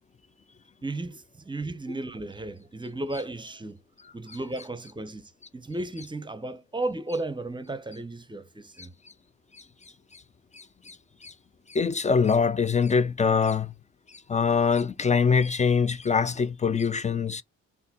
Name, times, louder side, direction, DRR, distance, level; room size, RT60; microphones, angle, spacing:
voice 1, 0.8-3.8 4.1-5.2 5.5-8.9, right 2 dB, 15° right, 0.7 m, -34 dB
voice 2, 4.0-4.4 8.8-8.9 9.5-9.6 10.1-10.2 10.5-11.3 11.7-13.7 14.1-17.4, left 5 dB, 25° left, 0.4 m, -24 dB
4.2 x 2.6 x 4.1 m
cardioid pair, 90°, 30 cm